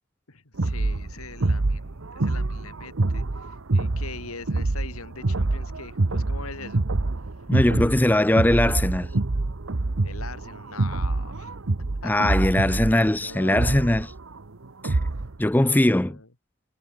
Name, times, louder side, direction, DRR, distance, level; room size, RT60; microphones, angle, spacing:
voice 1, 0.3-6.8 10.0-11.6 12.0-12.1 13.2-14.0 15.5-16.3, left 4 dB, 80° left, 2.6 m, -42 dB
sound 1, 0.6-15.4, right 2 dB, 65° right, 1.0 m, -26 dB
voice 2, 7.5-9.1 12.0-14.1 14.8-15.0 15.4-16.2, left 1 dB, 10° left, 0.4 m, -21 dB
head